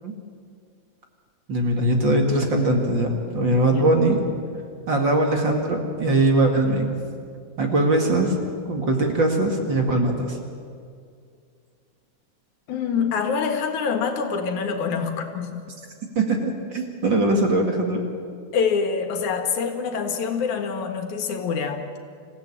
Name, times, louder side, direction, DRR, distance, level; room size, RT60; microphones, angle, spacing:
voice 1, 1.5-4.2 4.9-6.9 7.6-8.4 8.7-10.4 16.2-18.0, right 2 dB, 40° right, 2 dB, 2.6 m, -21 dB
voice 2, 12.7-15.7 18.5-21.9, left 6 dB, 80° left, 5 dB, 3.1 m, -25 dB
26.0 x 16.0 x 8.7 m, 2.2 s
omnidirectional pair, 3.4 m